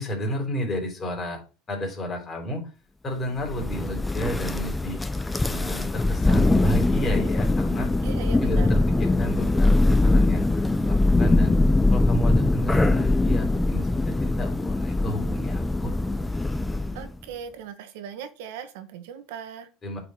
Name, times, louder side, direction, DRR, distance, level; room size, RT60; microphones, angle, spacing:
voice 1, 0.0-1.4 1.7-2.7 3.0-5.0 5.5-7.9 8.4-11.5 11.9-15.9 19.8-20.0, equal, 25° left, 1 dB, 3.9 m, -33 dB
Thunder, 3.4-17.1, left 2 dB, 10° left, 0.7 m, -22 dB
voice 2, 8.0-8.7 16.9-19.7, right 7 dB, 75° right, 9 dB, 1.4 m, -38 dB
8.9 x 4.9 x 4.9 m, 0.34 s
supercardioid pair, 110°, 0 cm